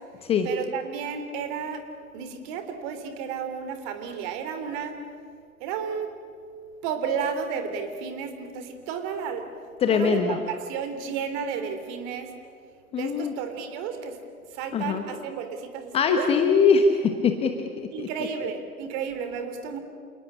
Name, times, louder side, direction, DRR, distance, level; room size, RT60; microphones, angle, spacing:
voice 1, 0.4-1.8 2.1-5.0 5.6-6.1 6.8-9.5 9.9-12.3 13.0-14.2 14.5-16.3 17.9-19.8, right 6 dB, 30° right, 8 dB, 3.3 m, -32 dB
voice 2, 9.8-10.4 12.9-13.3 14.7-15.0 15.9-17.5 17.8-18.1, left 5 dB, 15° left, 6 dB, 1.1 m, -22 dB
28.5 x 19.0 x 9.9 m, 2.1 s
figure-of-eight pair, 125°, 45 cm